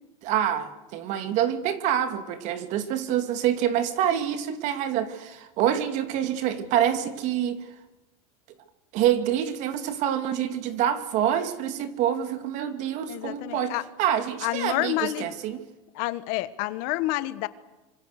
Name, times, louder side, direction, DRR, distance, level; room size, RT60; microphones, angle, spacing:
voice 1, 0.2-7.6 8.9-15.6, right 10 dB, 45° right, 2.5 m, -26 dB
voice 2, 13.0-13.8 14.4-15.3 15.9-17.5, left 18 dB, 50° left, 1.4 m, -29 dB
26.0 x 26.0 x 6.6 m
supercardioid pair, 160°, 17 cm